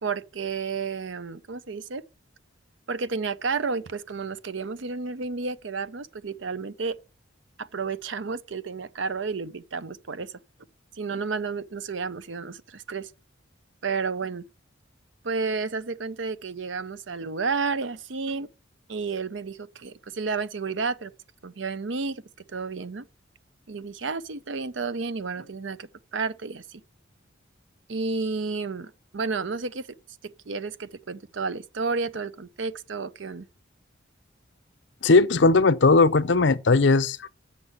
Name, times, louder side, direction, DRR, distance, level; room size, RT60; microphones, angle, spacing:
voice 1, 0.0-2.0 2.9-7.0 7.6-10.3 11.0-13.1 13.8-14.4 15.2-18.5 18.9-21.1 21.4-22.2 22.5-23.1 23.7-26.8 27.9-29.9 30.2-33.5, right 4 dB, 75° right, 0.7 m, -31 dB
voice 2, 35.0-37.3, left 3 dB, 65° left, 0.6 m, -18 dB
8.2 x 6.9 x 7.2 m
head